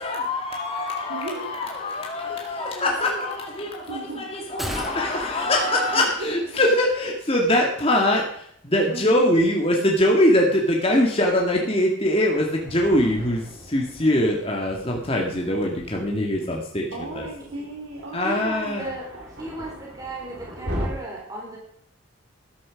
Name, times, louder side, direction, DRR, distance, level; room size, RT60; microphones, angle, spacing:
voice 1, 0.0-3.9 4.2-16.9 18.1-18.9, left 1 dB, 25° left, -1 dB, 2.0 m, -23 dB
voice 2, 1.1-1.5 3.9-4.3 5.9-6.7 8.9-9.3 16.9-19.2, right 2 dB, 85° right, -4 dB, 3.7 m, -36 dB
sound 1, 4.6-6.9 7.2-7.3, equal, ahead, 2.1 m, -36 dB
Thunder, 12.2-20.9, equal, 50° right, 4.9 m, -39 dB
voice 3, 18.2-19.1 19.4-21.6, right 2 dB, 15° right, -3 dB, 4.3 m, -35 dB
14.5 x 12.0 x 5.2 m, 0.67 s
head